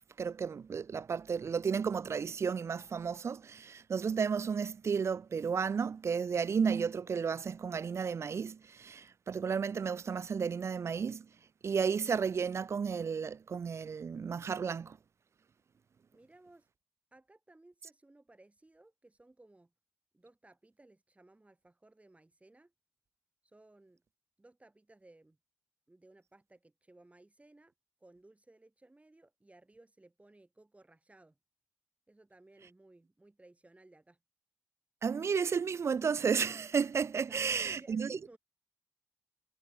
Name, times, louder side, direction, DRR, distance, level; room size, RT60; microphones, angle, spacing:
voice 1, 0.2-11.3 11.6-15.0 35.0-38.2, right 6 dB, 50° right, 0.4 m, -33 dB
voice 2, 16.1-16.7 17.1-19.7 20.1-22.7 23.4-24.0 24.4-25.4 25.9-27.7 28.0-31.4 32.1-34.2 37.3-38.4, right 2 dB, 20° right, 4.0 m, -60 dB
supercardioid pair, 45°, 6 cm